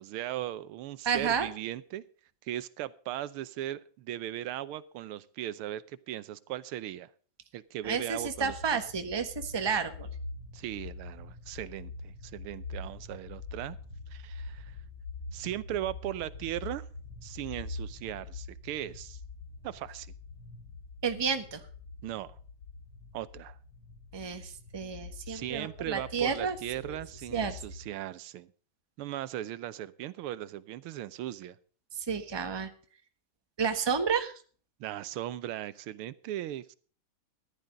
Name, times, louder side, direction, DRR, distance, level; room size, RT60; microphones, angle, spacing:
voice 1, 0.0-2.0 2.4-7.1 7.5-8.8 10.5-13.8 14.1-14.8 15.3-16.9 17.2-19.2 19.6-20.1 22.0-22.4 23.1-23.6 25.3-28.5 29.0-31.6 34.8-36.7, right 13 dB, 90° right, 17 dB, 1.6 m, -38 dB
voice 2, 1.0-1.5 7.8-10.1 21.0-21.6 24.1-26.6 26.8-27.0 27.3-27.6 32.0-32.7 33.6-34.3, right 6 dB, 15° right, 7 dB, 0.9 m, -31 dB
sound 1, 8.1-27.9, left 3 dB, 80° left, 2.5 m, -45 dB
14.5 x 11.5 x 3.9 m, 0.42 s
omnidirectional pair, 2.3 m